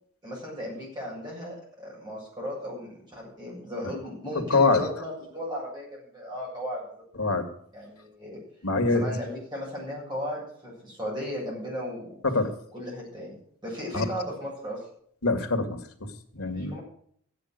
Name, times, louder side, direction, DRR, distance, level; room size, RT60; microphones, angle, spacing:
voice 1, 0.2-6.8 7.7-8.4 8.8-12.2 12.7-13.4 13.6-14.8 16.5-16.8, equal, 20° right, -4 dB, 7.5 m, -36 dB
voice 2, 4.3-5.0 7.1-7.5 8.6-9.1 12.2-12.5 13.9-14.0 15.2-16.8, left 3 dB, 90° left, 6 dB, 2.3 m, -25 dB
15.0 x 10.0 x 6.6 m, 0.64 s
head